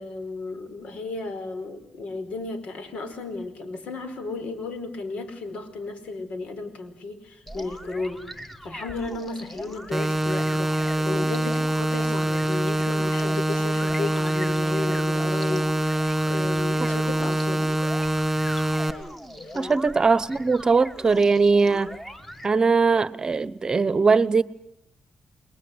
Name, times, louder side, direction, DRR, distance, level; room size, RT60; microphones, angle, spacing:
voice 1, 0.0-8.2 8.6-17.7 19.4-19.8, left 3 dB, 75° left, 4.8 m, -34 dB
sound 1, 7.5-22.5, equal, 10° left, 2.1 m, -41 dB
sound 2, 9.9-18.9, right 1 dB, 10° right, 3.1 m, -24 dB
voice 2, 19.5-22.0 22.4-24.4, right 4 dB, 35° right, 1.0 m, -20 dB
29.5 x 21.5 x 8.1 m
cardioid pair, 100°, 2 cm